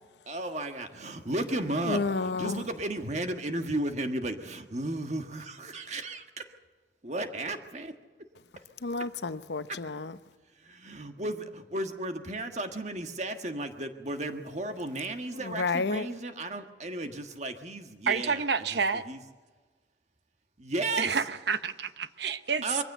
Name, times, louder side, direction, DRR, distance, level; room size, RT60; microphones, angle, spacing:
voice 1, 0.3-6.5 7.0-7.9 9.7-9.8 10.6-18.4 18.7-18.8 19.0-19.2 20.6-21.2 22.6-22.8, right 2 dB, 40° right, 1.5 m, -34 dB
voice 2, 1.9-2.6 8.8-10.1 15.4-16.1, left 4 dB, 80° left, 0.7 m, -30 dB
voice 3, 18.1-19.0 21.0-22.8, right 5 dB, 75° right, 0.9 m, -29 dB
23.0 x 15.5 x 8.0 m
head